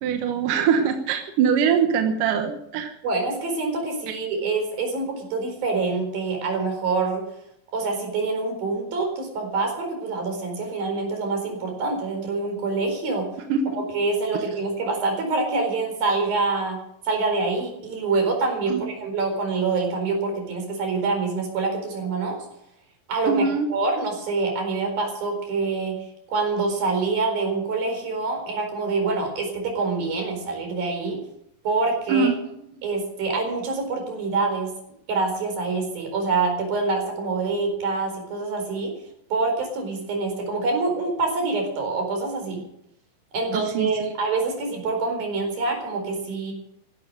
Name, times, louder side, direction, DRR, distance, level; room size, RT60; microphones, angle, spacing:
voice 1, 0.0-2.9 13.5-13.8 18.7-18.8 23.3-23.7 32.1-32.5 43.5-44.1, right 6 dB, 70° right, 5 dB, 2.7 m, -23 dB
voice 2, 3.0-7.2 7.7-13.2 13.9-16.8 17.0-22.4 23.1-26.0 26.3-31.2 31.6-32.3 32.8-34.7 35.1-38.9 39.3-42.6 43.3-46.5, right 3 dB, 85° right, 4 dB, 6.2 m, -26 dB
16.0 x 12.0 x 6.6 m, 0.74 s
omnidirectional pair, 4.1 m